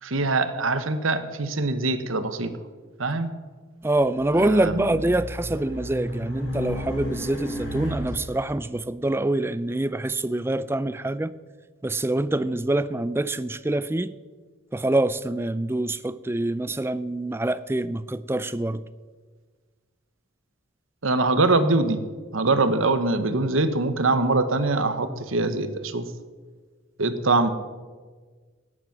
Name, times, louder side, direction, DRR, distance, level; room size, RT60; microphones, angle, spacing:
voice 1, 0.0-2.5 3.0-3.3 4.4-4.9 21.0-22.0 22.3-26.1 27.0-27.5, right 3 dB, 80° right, 1.1 m, -23 dB
voice 2, 3.8-11.3 11.8-14.1 14.7-18.9, right 1 dB, 10° right, 0.4 m, -25 dB
Race car auto racing, 4.1-8.5, equal, 60° left, 3.9 m, -33 dB
17.5 x 10.0 x 6.0 m
head